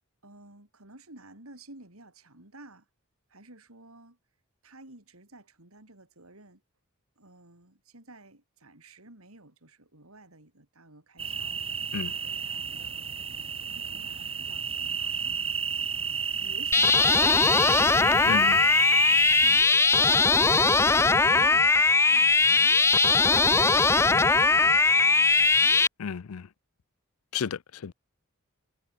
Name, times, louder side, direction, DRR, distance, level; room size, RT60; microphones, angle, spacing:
voice 1, 0.2-2.9 3.3-4.2 4.6-6.6 7.2-11.6 12.2-15.4 16.4-18.3 18.6-19.7 20.2-21.7 22.0-25.8, right 2 dB, 90° right, 5.4 m, -52 dB
sound 1, 11.2-19.6, right 6 dB, 30° right, 1.1 m, -32 dB
sound 2, 16.7-25.9, left 4 dB, 10° left, 0.4 m, -20 dB
voice 2, 18.3-18.6 26.0-26.5 27.3-27.9, left 7 dB, 90° left, 0.5 m, -32 dB
head